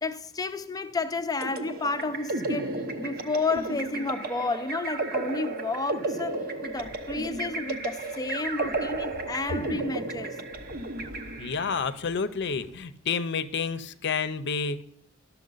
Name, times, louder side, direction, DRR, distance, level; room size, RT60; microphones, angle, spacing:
voice 1, 0.0-10.4, left 3 dB, 20° left, 0.5 m, -31 dB
sound 1, 1.4-11.8, right 2 dB, 45° right, 0.8 m, -33 dB
sound 2, 6.5-12.8, left 1 dB, 85° right, 2.9 m, -52 dB
voice 2, 11.4-14.8, left 5 dB, 60° left, 0.7 m, -29 dB
12.0 x 7.0 x 3.9 m
head